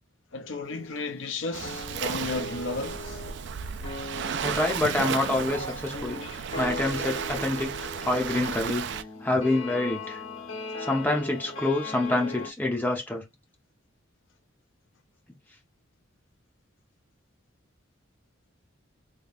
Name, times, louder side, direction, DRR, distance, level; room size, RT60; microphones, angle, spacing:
voice 1, 0.3-3.2, left 3 dB, 65° left, 0.6 m, -33 dB
sound 1, 0.6-1.4 1.6-12.5, left 2 dB, 85° left, 1.5 m, -39 dB
Waves surf, 1.5-9.0, right 7 dB, 55° right, 0.3 m, -34 dB
voice 2, 4.4-6.2 6.5-8.9 9.2-10.2 10.8-13.2, left 2 dB, 10° left, 0.9 m, -27 dB
3.5 x 3.1 x 2.5 m
head